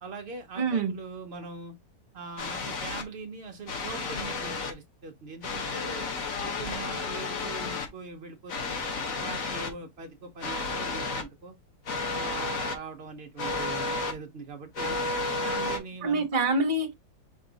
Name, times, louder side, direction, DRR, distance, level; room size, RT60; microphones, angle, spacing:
voice 1, 0.0-1.7 2.1-6.1 6.4-8.7 9.1-11.6 12.0-15.0 15.4-16.4, right 4 dB, 80° right, 0.5 m, -42 dB
voice 2, 0.6-1.0 16.0-16.9, right 3 dB, 40° right, 0.7 m, -26 dB
sound 1, 2.4-3.0 3.7-4.7 5.4-7.9 8.5-9.7 10.4-11.2 11.8-12.7 13.4-14.1 14.7-15.8, left 3 dB, 50° left, 1.3 m, -32 dB
5.3 x 2.6 x 3.8 m
omnidirectional pair, 2.1 m